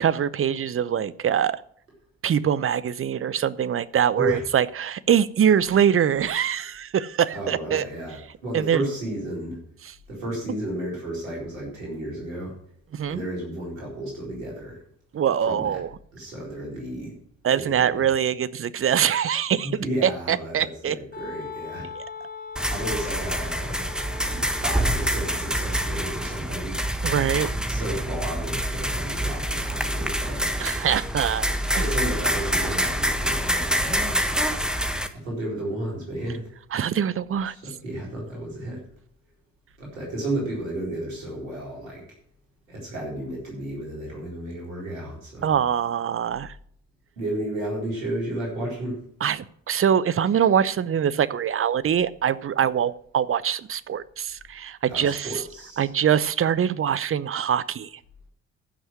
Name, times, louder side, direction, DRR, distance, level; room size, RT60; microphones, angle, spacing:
voice 1, 0.0-1.6 2.2-7.9 8.5-8.8 9.8-9.9 12.9-13.2 15.1-15.9 17.4-19.7 20.0-21.0 22.0-22.1 27.0-27.5 30.6-31.8 36.7-37.5 45.4-46.5 49.2-55.3 55.8-57.9, right 8 dB, 35° right, 18 dB, 0.7 m, -23 dB
voice 2, 7.3-9.6 10.1-12.5 13.1-14.8 15.4-15.8 16.1-17.2 17.5-18.0 19.6-21.9 22.7-23.8 24.3-26.8 27.7-30.6 31.8-34.4 35.1-36.5 37.5-38.8 39.8-42.0 42.7-45.5 47.2-49.0 54.9-55.9, right 1 dB, 85° right, -3 dB, 4.3 m, -32 dB
Wind instrument woodwind instrument, 21.1-26.8, left 4 dB, 25° left, 3.4 m, -41 dB
sound 1, 22.6-35.1, equal, ahead, 1.3 m, -26 dB
14.5 x 6.4 x 6.1 m, 0.63 s
figure-of-eight pair, 45°, 39 cm